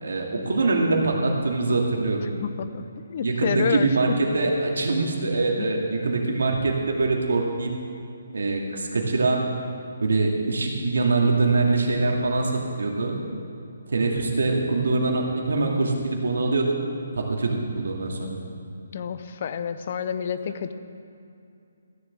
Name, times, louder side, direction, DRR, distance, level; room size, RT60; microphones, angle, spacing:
voice 1, 0.0-2.2 3.2-7.8 8.3-9.5 10.0-13.2 13.9-16.8 17.1-18.4, right 3 dB, 80° right, 0 dB, 2.4 m, -23 dB
voice 2, 2.4-2.8 3.1-3.9 5.6-5.7 18.9-20.7, left 7 dB, 35° left, 11 dB, 0.6 m, -28 dB
14.5 x 7.2 x 7.7 m, 2.6 s
hypercardioid pair, 170°, 0 cm